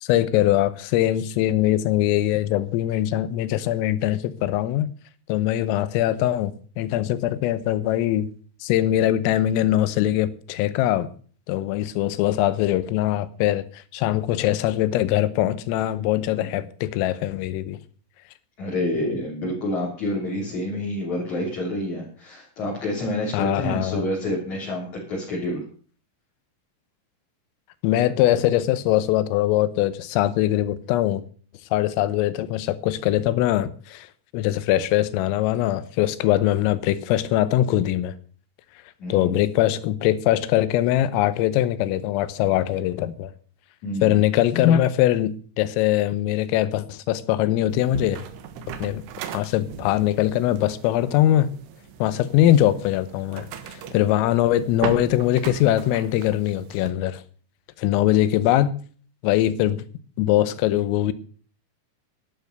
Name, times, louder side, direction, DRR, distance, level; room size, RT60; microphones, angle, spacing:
voice 1, 0.0-4.9 5.3-8.3 8.6-11.1 11.5-17.8 23.3-24.1 27.8-31.2 31.7-34.1 34.3-38.2 39.1-43.3 44.0-48.3 48.8-49.0 49.3-51.5 52.0-57.2 57.8-58.8 59.2-59.8 60.2-61.1, left 13 dB, 80° left, 3.5 m, -22 dB
voice 2, 18.6-25.6 39.0-39.3 43.8-44.2, left 1 dB, 40° left, 4.2 m, -28 dB
sound 1, 47.7-56.9, right 8 dB, 75° right, 3.9 m, -38 dB
11.5 x 11.5 x 6.6 m
omnidirectional pair, 6.0 m